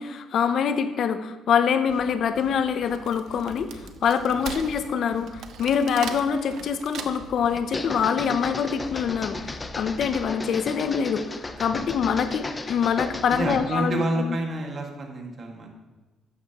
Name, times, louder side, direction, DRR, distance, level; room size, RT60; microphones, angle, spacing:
voice 1, 0.0-11.2 11.6-14.4, left 7 dB, 65° left, 11 dB, 0.6 m, -25 dB
sound 1, 1.9-2.1 2.4-2.5 2.8-3.0 3.3-3.9 4.2-4.4 4.7-4.8 5.1-5.7 6.0-6.2 6.5-6.7 7.0-7.6 7.9-8.1 8.4-8.5 8.8-9.2, left 2 dB, 80° left, 3.7 m, -46 dB
Wood, 2.7-7.5, right 7 dB, 70° right, 0.8 m, -39 dB
sound 2, 7.6-13.7, left 2 dB, 20° left, 0.7 m, -35 dB
voice 2, 13.3-15.7, right 1 dB, 45° right, 1 dB, 1.9 m, -29 dB
12.5 x 9.0 x 3.0 m, 1.2 s
cardioid pair, 100°, 0 cm